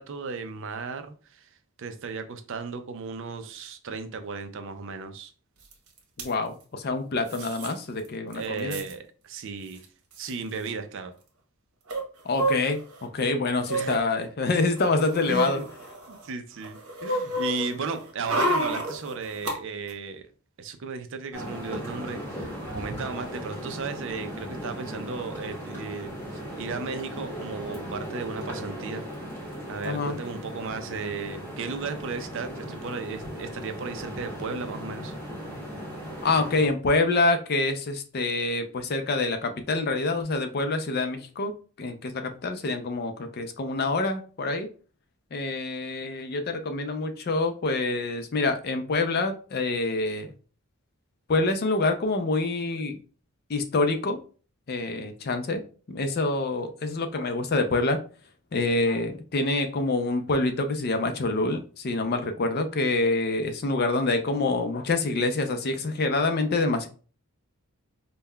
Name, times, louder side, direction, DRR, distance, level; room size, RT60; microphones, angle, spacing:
voice 1, 0.0-1.5 1.8-5.3 8.3-9.8 10.2-11.1 13.7-14.0 15.3-15.7 16.1-20.2 20.6-29.0 29.7-35.1, right 4 dB, 55° right, 0.4 m, -35 dB
sound 1, 5.7-5.8 6.0-6.3 7.3-7.7 8.0-8.1 8.3-8.9 9.8-9.9 10.1-10.3 11.9-13.0 13.6-14.0 14.6-16.2 16.6-19.5 19.9-20.0, right 1 dB, 75° right, 1.0 m, -30 dB
voice 2, 6.2-8.8 12.2-15.6 29.8-30.2 36.2-41.5 41.8-44.7 45.3-50.3 51.3-53.0 53.5-54.2 54.7-55.6 55.9-58.0 58.5-66.9, left 3 dB, 45° left, 0.4 m, -26 dB
sound 2, 21.3-36.7, equal, 10° left, 1.0 m, -37 dB
5.3 x 2.2 x 2.2 m
head